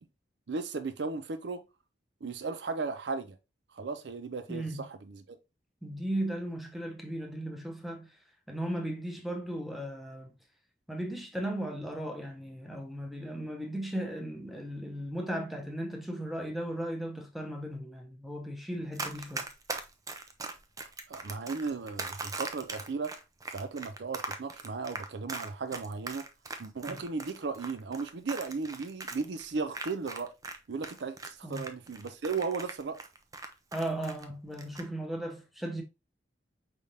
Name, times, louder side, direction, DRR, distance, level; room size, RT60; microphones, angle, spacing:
voice 1, 0.5-1.6 2.2-3.4 3.7-5.4 21.1-23.1 23.5-26.2 26.6-30.3 30.7-33.0, right 4 dB, 75° right, 0.5 m, -36 dB
voice 2, 4.5-4.9 5.8-8.2 8.5-10.3 10.9-19.5 26.9-27.0 31.4-31.7 33.7-35.8, right 1 dB, ahead, 0.8 m, -36 dB
Run, 18.9-30.6 30.8-34.2 34.5-34.8, right 3 dB, 20° right, 0.5 m, -39 dB
4.9 x 3.4 x 2.7 m
head